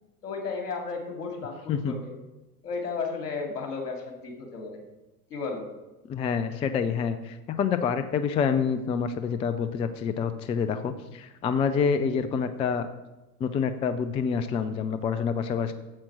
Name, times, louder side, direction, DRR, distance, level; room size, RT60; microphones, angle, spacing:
voice 1, 0.2-2.1 2.6-4.8 5.3-5.7, left 4 dB, 70° left, 3 dB, 2.5 m, -34 dB
voice 2, 6.1-12.9 13.4-15.7, left 6 dB, 15° left, 11 dB, 0.3 m, -27 dB
8.8 x 7.4 x 6.1 m, 1.0 s
figure-of-eight pair, 85°, 48 cm